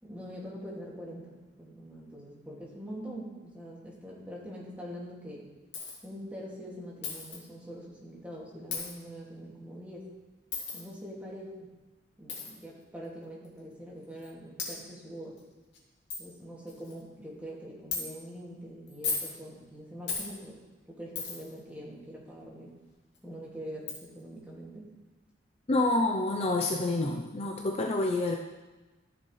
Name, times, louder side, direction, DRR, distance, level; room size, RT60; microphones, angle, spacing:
voice 1, 0.0-5.5 6.0-10.1 10.7-11.7 12.2-15.4 16.2-20.6 20.9-22.7 23.2-24.9, equal, 10° right, -5 dB, 2.2 m, -44 dB
Coin (dropping), 5.7-6.0 7.0-7.4 8.7-8.9 10.5-10.8 12.3-12.5 13.4-13.5 14.2-14.3 14.6-14.7 15.4-15.5 15.7-15.8 16.1-16.2 16.7-17.0 17.9-18.0 18.9-19.3 20.1-20.3 21.2-21.5 23.2-23.3 23.9-24.0, left 5 dB, 70° left, 2.4 m, -35 dB
voice 2, 25.7-28.4, left 2 dB, 35° left, 1 dB, 0.6 m, -28 dB
13.5 x 7.1 x 3.2 m, 1.2 s
head